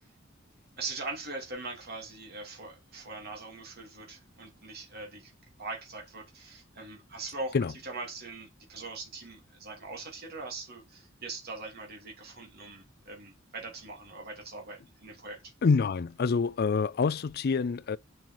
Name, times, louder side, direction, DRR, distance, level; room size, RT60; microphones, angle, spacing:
voice 1, 0.8-5.3 5.6-7.6 7.8-15.5, right 3 dB, 55° right, 2.9 m, -41 dB
voice 2, 15.6-18.0, left 5 dB, 55° left, 0.4 m, -26 dB
7.8 x 7.6 x 4.8 m
head